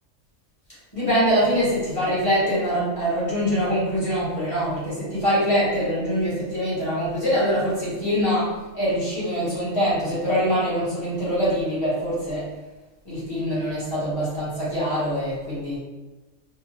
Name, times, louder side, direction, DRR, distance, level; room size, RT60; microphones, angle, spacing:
voice 1, 0.9-12.5 13.0-15.8, equal, 25° left, -9 dB, 1.1 m, -24 dB
2.8 x 2.2 x 3.1 m, 1.2 s
omnidirectional pair, 1.4 m